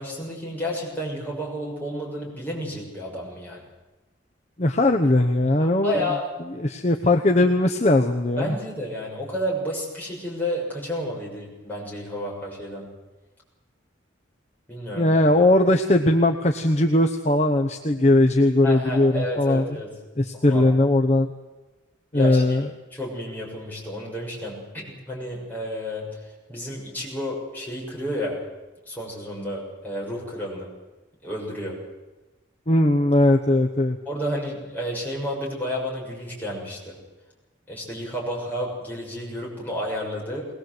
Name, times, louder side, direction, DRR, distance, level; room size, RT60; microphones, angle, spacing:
voice 1, 0.0-3.6 5.6-6.3 7.4-7.5 8.4-12.9 14.7-15.2 18.6-19.9 20.3-20.7 22.1-22.6 22.9-26.2 26.5-28.4 28.9-30.7 31.2-31.8 34.0-37.0 37.7-40.5, equal, 10° left, -4 dB, 6.6 m, -31 dB
voice 2, 4.6-6.1 6.6-8.6 15.0-19.7 20.2-21.3 22.1-22.7 32.7-34.0, left 1 dB, 35° left, 4 dB, 1.0 m, -19 dB
21.0 x 20.0 x 7.9 m, 1.1 s
head